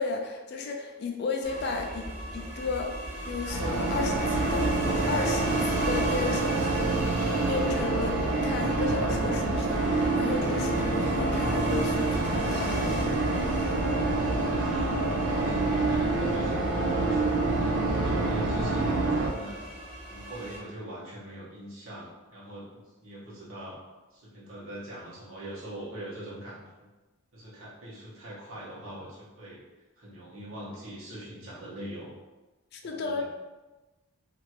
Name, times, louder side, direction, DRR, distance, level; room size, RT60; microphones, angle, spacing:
voice 1, 0.0-2.9 3.3-4.7 5.1-7.0 7.5-12.8 32.7-33.2, left 4 dB, 50° left, 3 dB, 0.3 m, -33 dB
sound 1, 1.4-20.6, right 1 dB, 35° right, 0.6 m, -39 dB
sound 2, 3.5-19.3, right 2 dB, 85° right, 0.5 m, -27 dB
voice 2, 14.5-17.3 17.8-19.7 20.1-23.8 24.1-26.9 27.3-29.6 30.0-32.1 32.9-33.2, right 1 dB, 70° right, -8 dB, 1.2 m, -42 dB
2.9 x 2.5 x 2.9 m, 1.2 s
head